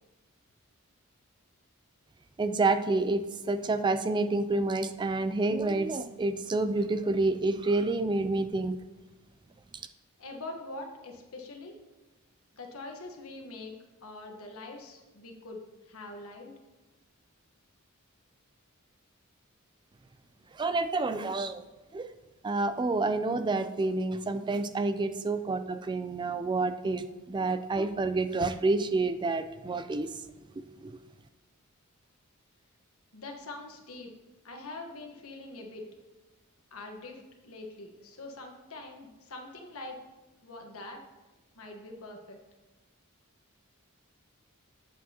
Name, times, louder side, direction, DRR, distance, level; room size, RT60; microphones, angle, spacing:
voice 1, 2.4-3.2 3.5-8.7 20.6-21.6 21.9-22.0 22.4-30.1 30.8-30.9, right 3 dB, 20° right, 11 dB, 0.3 m, -28 dB
voice 2, 10.2-11.8 12.5-13.7 14.0-15.6 15.9-16.5 33.1-34.1 34.4-35.9 36.7-40.0 40.4-41.0 41.5-42.4, left 2 dB, 75° left, 2 dB, 1.2 m, -43 dB
8.5 x 7.2 x 2.9 m, 1.1 s
head